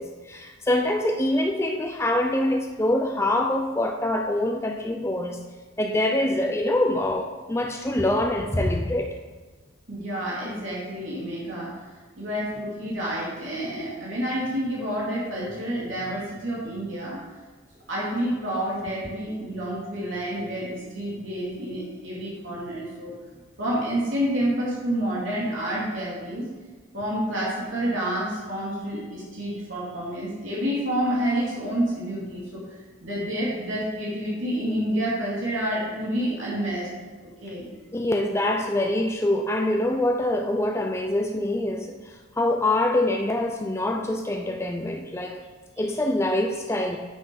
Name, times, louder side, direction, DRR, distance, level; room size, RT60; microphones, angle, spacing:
voice 1, 0.0-5.4 5.8-9.1 37.9-41.9 42.4-45.4 45.8-47.0, left 1 dB, 15° left, 3 dB, 0.5 m, -25 dB
voice 2, 9.9-11.7 12.2-17.2 17.9-23.1 23.6-26.5 26.9-32.6 33.0-36.9 37.2-37.7, right 1 dB, 85° right, -6 dB, 2.9 m, -29 dB
9.2 x 6.2 x 5.4 m, 1.4 s
head